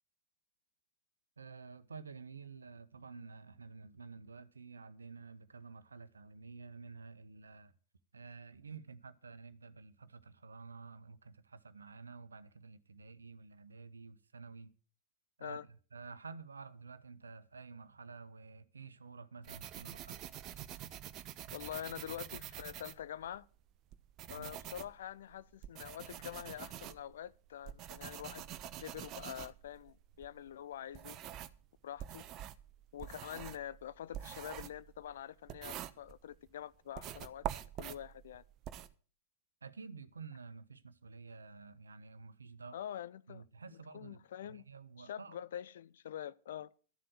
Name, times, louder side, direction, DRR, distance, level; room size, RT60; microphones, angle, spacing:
voice 1, 1.4-7.7 8.1-14.7 15.4-20.2 24.3-24.5 39.6-42.8 43.3-45.4, right 4 dB, 75° right, 1.0 m, -51 dB
sound 1, 19.4-23.4 23.9-31.6 32.0-36.5 36.9-38.9, right 11 dB, 35° right, 0.8 m, -46 dB
voice 2, 21.5-23.5 24.3-28.5 28.8-31.2 31.8-32.2 32.9-37.5 37.8-38.4 42.7-43.4 43.7-44.7 45.0-46.7, left 10 dB, 60° left, 0.5 m, -45 dB
12.5 x 7.7 x 7.7 m
figure-of-eight pair, 90°, 0 cm